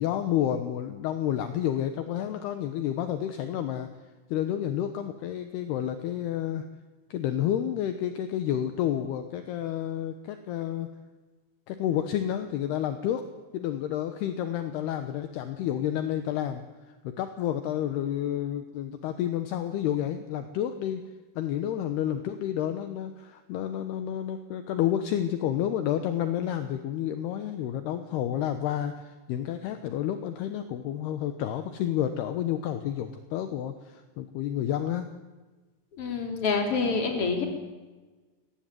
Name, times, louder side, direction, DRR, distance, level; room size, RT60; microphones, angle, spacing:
voice 1, 0.0-3.9 4.3-6.6 7.1-10.9 11.7-13.2 13.5-16.6 17.2-21.0 21.4-35.1, left 10 dB, 75° left, 9 dB, 2.7 m, -30 dB
voice 2, 36.0-37.5, left 4 dB, 30° left, 3 dB, 3.7 m, -27 dB
23.5 x 18.5 x 9.2 m, 1.3 s
omnidirectional pair, 5.5 m